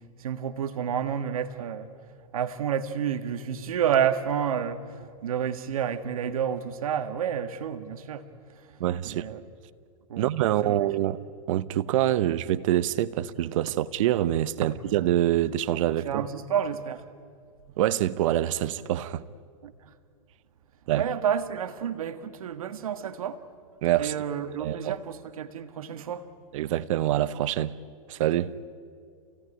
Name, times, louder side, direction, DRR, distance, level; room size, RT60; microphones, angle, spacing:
voice 1, 0.2-1.9 2.3-8.3 8.6-8.7 9.0-9.4 10.1-10.2 10.6-10.9 14.6-14.7 16.0-17.0 19.6-19.9 20.9-23.4 24.0-26.3, right 8 dB, 85° right, 1.6 m, -30 dB
voice 2, 8.8-9.2 10.2-11.2 11.5-16.2 17.8-19.2 20.9-21.0 23.8-24.1 24.6-25.0 26.5-27.7 28.1-28.5, right 13 dB, 65° right, 1.0 m, -25 dB
28.5 x 17.0 x 9.9 m
hypercardioid pair, 125°, 18 cm